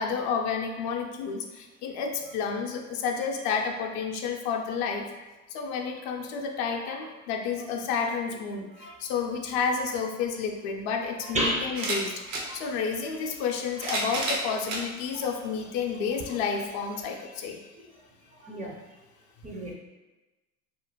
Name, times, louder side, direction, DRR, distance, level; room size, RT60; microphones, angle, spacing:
voice 1, 0.0-5.1 5.5-17.7, left 5 dB, 60° left, 3 dB, 0.5 m, -30 dB
sound 1, 10.3-10.4 11.7-12.5 13.5-14.9 15.6-15.7 17.0-17.1, right 2 dB, 80° right, 0.8 m, -31 dB
voice 2, 11.3-11.7 17.8-17.9 18.4-18.7 19.4-19.7, right 1 dB, 20° right, -2 dB, 0.4 m, -30 dB
2.4 x 2.1 x 3.0 m, 1.1 s
hypercardioid pair, 85°, 39 cm